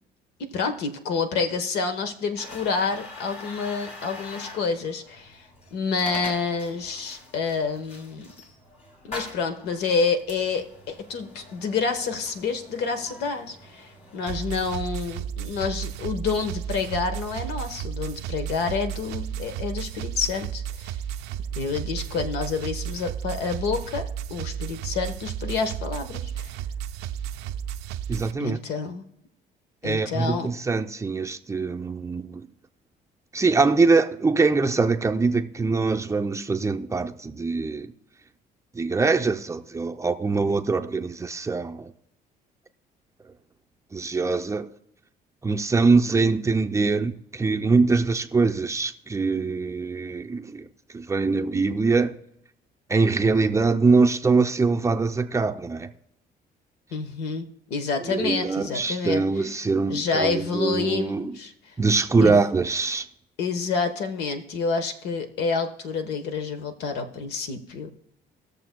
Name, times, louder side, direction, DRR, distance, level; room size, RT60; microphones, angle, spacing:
voice 1, 0.4-5.4 5.7-8.3 9.0-20.9 21.5-26.5 28.4-29.0 29.8-30.5 56.9-59.4 59.9-61.5 62.2-62.4 63.4-67.9, left 5 dB, 80° left, 1.1 m, -28 dB
sound 1, 2.4-14.7, left 2 dB, 40° left, 2.7 m, -44 dB
sound 2, 14.3-28.3, right 9 dB, 90° right, 0.5 m, -33 dB
voice 2, 28.1-28.6 29.8-32.5 33.3-37.9 38.7-41.9 43.9-44.7 45.4-50.7 50.9-52.2 52.9-55.9 58.1-61.3 61.8-63.1, right 4 dB, 15° right, 0.5 m, -23 dB
20.0 x 6.7 x 2.2 m
cardioid pair, 110°, 17 cm